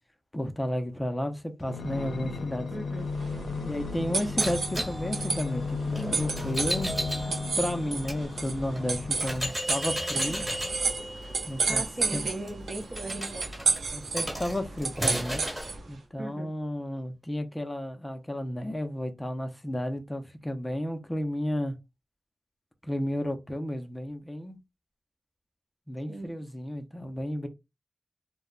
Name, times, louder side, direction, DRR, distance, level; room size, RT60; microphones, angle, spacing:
voice 1, 0.3-2.7 3.6-6.9 7.3-10.4 11.5-11.8 12.1-12.2 13.9-15.4 15.9-21.7 22.8-24.6 25.9-27.5, equal, 20° left, 0.5 m, -32 dB
sound 1, 1.6-9.6 10.2-11.4 12.1-12.2, left 4 dB, 85° left, 0.5 m, -36 dB
voice 2, 2.7-3.1 11.7-13.5 16.2-16.5 26.1-26.4, right 2 dB, 50° right, 0.8 m, -38 dB
sound 2, 3.1-15.9, right 4 dB, 85° right, 0.6 m, -32 dB
sound 3, 4.4-8.2 8.8-8.9 9.2-15.7, equal, 15° right, 1.2 m, -35 dB
2.1 x 2.1 x 3.6 m
cardioid pair, 55°, 0 cm